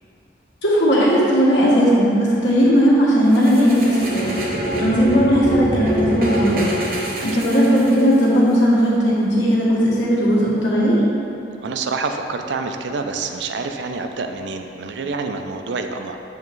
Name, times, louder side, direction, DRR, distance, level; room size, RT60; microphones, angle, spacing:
voice 1, 0.6-6.7 7.2-11.0, equal, 85° left, -6 dB, 1.4 m, -17 dB
sound 1, 3.3-8.2, right 1 dB, 50° right, 0.9 m, -25 dB
voice 2, 11.6-16.2, right 4 dB, 75° right, 6 dB, 0.4 m, -27 dB
7.1 x 3.1 x 4.6 m, 2.7 s
head